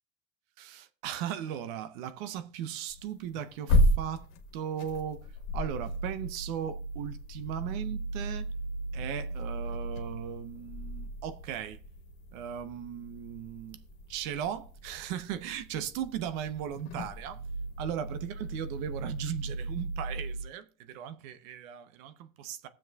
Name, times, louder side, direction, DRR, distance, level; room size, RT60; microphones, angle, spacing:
voice 1, 0.6-4.3 4.5-5.3 5.5-8.5 8.9-11.8 12.3-13.8 14.1-17.4 17.8-22.7, right 9 dB, 85° right, 1.0 m, -37 dB
sound 1, 2.9-20.4, equal, 85° left, 1.4 m, -34 dB
20.5 x 7.3 x 2.4 m
supercardioid pair, 90°, 40 cm